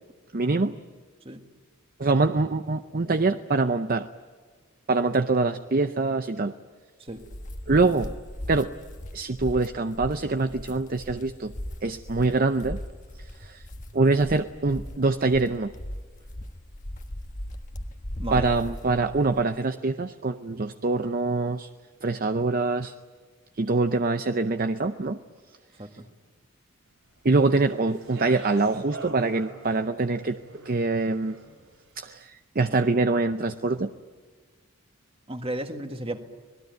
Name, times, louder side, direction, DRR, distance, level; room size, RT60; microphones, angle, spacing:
voice 1, 0.3-0.7 2.0-4.1 4.9-6.5 7.7-8.1 8.5-8.8 9.1-11.5 11.8-12.8 13.4-13.6 13.9-15.7 18.3-21.7 22.0-22.9 23.6-25.2 27.2-30.4 30.7-31.4 32.0-33.9, right 3 dB, 40° right, 9 dB, 0.6 m, -24 dB
sound 1, 7.1-19.4, left 1 dB, 35° left, 1.3 m, -38 dB
voice 2, 18.2-18.5 25.8-26.1 35.3-36.2, right 1 dB, 25° right, 6 dB, 1.7 m, -34 dB
Speech, 27.4-31.7, right 2 dB, 60° right, 7.4 m, -43 dB
26.0 x 20.0 x 9.3 m, 1.5 s
head